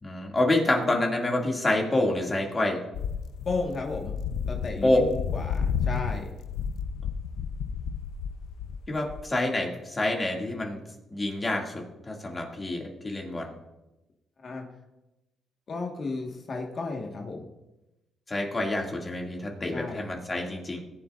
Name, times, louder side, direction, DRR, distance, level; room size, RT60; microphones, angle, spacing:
voice 1, 0.0-2.8 4.8-5.0 8.9-10.8 11.1-13.5 18.3-20.8, left 2 dB, 25° left, 0 dB, 2.2 m, -27 dB
sound 1, 2.9-9.2, left 6 dB, 80° left, 0.5 m, -32 dB
voice 2, 3.4-4.1 4.5-6.3 14.4-14.6 15.7-17.5 19.7-20.0, left 3 dB, 45° left, 2 dB, 1.5 m, -33 dB
20.5 x 7.5 x 2.5 m, 0.99 s
cardioid pair, 90°, 0 cm